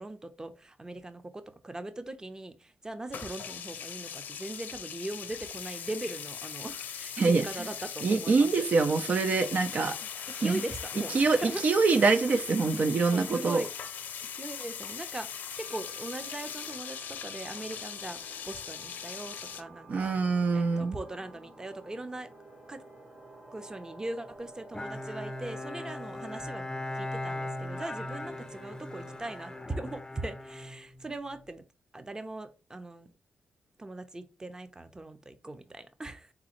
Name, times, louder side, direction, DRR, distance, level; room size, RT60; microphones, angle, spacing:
voice 1, 0.0-8.7 10.0-10.1 10.4-11.6 13.1-13.7 14.4-20.1 20.5-22.3 22.7-22.8 23.5-26.6 26.9-31.6 31.9-33.1 33.8-36.3, right 2 dB, 20° right, 0.7 m, -40 dB
sound 1, 3.1-19.6, left 8 dB, 80° left, 0.6 m, -40 dB
voice 2, 8.0-10.0 10.4-10.6 11.1-13.6 19.9-21.0, right 4 dB, 55° right, 0.5 m, -25 dB
sound 2, 15.6-29.6, right 2 dB, 40° right, 1.5 m, -51 dB
Bowed string instrument, 24.7-31.4, left 1 dB, 20° left, 0.5 m, -39 dB
4.2 x 3.7 x 3.0 m
cardioid pair, 70°, 3 cm